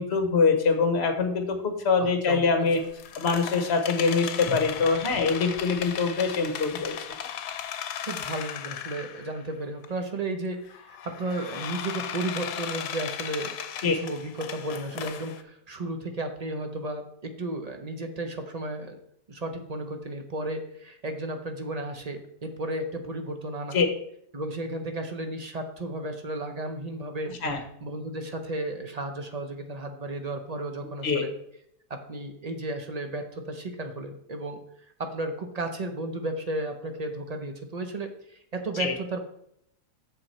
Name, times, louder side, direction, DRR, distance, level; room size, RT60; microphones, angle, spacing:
voice 1, 0.0-2.8 3.2-7.2 13.8-13.9 23.7-23.9 27.4-27.6 31.0-31.2 38.8-38.9, left 4 dB, 45° left, 5 dB, 1.3 m, -24 dB
voice 2, 2.0-2.4 8.1-19.0 19.3-23.8 24.3-27.3 27.8-31.3 31.9-34.6 35.0-39.2, right 2 dB, 40° right, 5 dB, 0.6 m, -34 dB
sound 1, 2.7-9.4 9.8-9.9 10.7-15.4, left 9 dB, 75° left, 1.2 m, -36 dB
7.8 x 7.0 x 4.3 m, 0.72 s
omnidirectional pair, 1.7 m